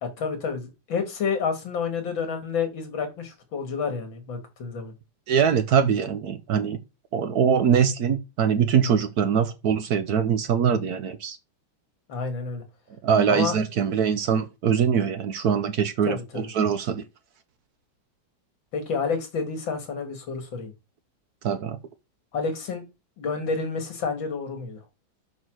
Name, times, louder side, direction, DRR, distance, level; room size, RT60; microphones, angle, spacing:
voice 1, 0.0-4.9 12.1-12.6 13.3-13.5 16.1-16.5 18.7-20.7 22.3-22.8 23.2-24.8, left 5 dB, 80° left, 2.7 m, -29 dB
voice 2, 5.3-6.8 7.1-11.4 13.0-17.0 21.4-21.8, right 7 dB, 60° right, 1.2 m, -23 dB
7.3 x 3.9 x 6.3 m
omnidirectional pair, 2.1 m